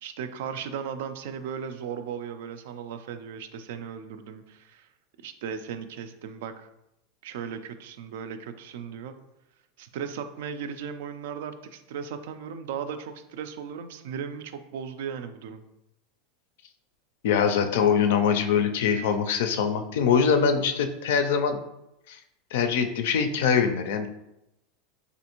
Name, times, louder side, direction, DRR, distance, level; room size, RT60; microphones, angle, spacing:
voice 1, 0.0-4.9 5.2-6.7 7.2-9.1 9.8-15.6, right 7 dB, 75° right, 10 dB, 0.3 m, -36 dB
voice 2, 17.2-21.6 22.1-22.2 22.5-24.1, left 6 dB, 75° left, 7 dB, 0.4 m, -23 dB
3.3 x 2.5 x 2.9 m, 0.87 s
supercardioid pair, 125°, 0 cm